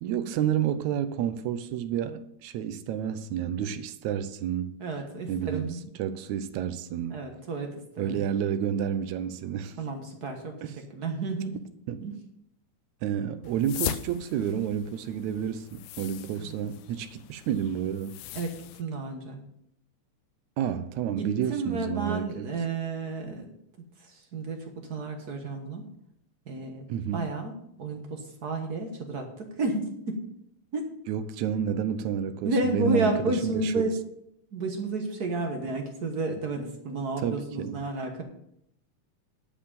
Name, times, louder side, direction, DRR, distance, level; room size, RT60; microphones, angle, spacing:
voice 1, 0.0-4.8 5.3-5.7 6.0-7.3 8.0-9.8 10.6-10.7 11.9-12.0 13.0-18.2 20.6-22.5 26.9-27.3 31.1-33.9 37.2-37.8, right 9 dB, 80° right, 2.0 m, -30 dB
voice 2, 4.8-5.9 7.1-8.2 9.8-11.6 12.0-12.1 16.4-16.7 18.3-19.4 21.2-23.5 24.0-25.9 26.5-26.9 27.1-30.2 30.7-30.8 32.4-33.9 34.5-38.2, right 2 dB, 50° right, 1.2 m, -31 dB
sound 1, 13.4-18.8, left 13 dB, 85° left, 2.0 m, -39 dB
11.5 x 5.2 x 7.0 m
omnidirectional pair, 3.4 m